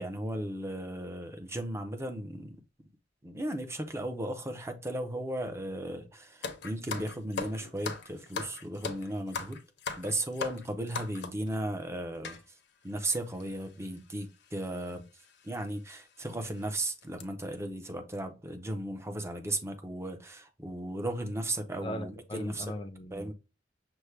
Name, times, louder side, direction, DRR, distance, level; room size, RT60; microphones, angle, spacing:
voice 1, 0.0-2.6 3.2-9.6 10.0-12.4 12.8-15.1 15.4-22.7 23.1-23.3, right 1 dB, 15° right, 0.6 m, -36 dB
sound 1, 6.4-11.5 12.2-12.4 13.1-13.2 13.4-13.6 14.6-14.8 15.2-15.3 15.9-16.0 16.4-16.6 17.0-17.2, left 4 dB, 65° left, 0.7 m, -38 dB
voice 2, 21.8-23.3, equal, 25° left, 0.6 m, -38 dB
6.1 x 2.2 x 3.3 m
head